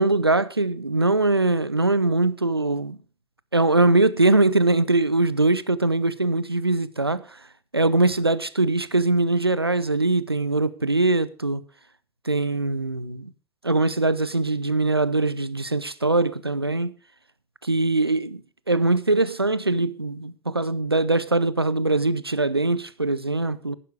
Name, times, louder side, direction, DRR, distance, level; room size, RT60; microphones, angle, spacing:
voice 1, 0.0-3.0 3.5-7.2 7.7-11.6 12.2-13.3 13.6-17.0 17.6-18.4 18.7-23.8, right 2 dB, 90° right, 0.5 m, -22 dB
11.0 x 10.0 x 4.8 m
figure-of-eight pair, 75°, 12 cm